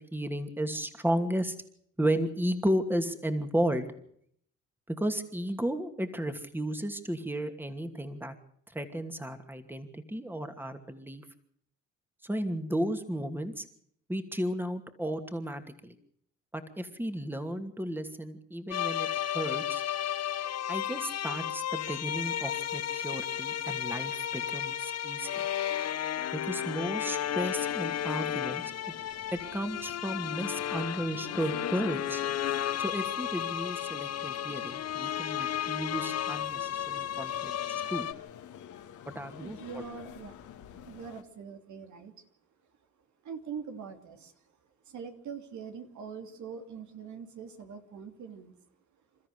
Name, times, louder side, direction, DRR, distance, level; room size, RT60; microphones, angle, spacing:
voice 1, 0.0-1.6 2.0-3.9 4.9-8.3 8.7-11.2 12.2-13.6 14.1-15.9 16.5-19.1 19.3-19.8 20.7-25.5 26.3-28.6 29.5-32.2 32.8-38.0 39.1-39.8, right 1 dB, 5° right, 7 dB, 2.6 m, -33 dB
sound 1, 18.7-38.1, left 10 dB, 55° left, 0.9 m, -33 dB
sound 2, 27.2-41.2, left 9 dB, 80° left, 2.5 m, -48 dB
voice 2, 39.4-40.3 40.9-42.1 43.2-44.3 44.8-48.5, right 6 dB, 70° right, 6 dB, 2.9 m, -43 dB
28.5 x 13.5 x 6.7 m, 0.65 s
cardioid pair, 90°, 30 cm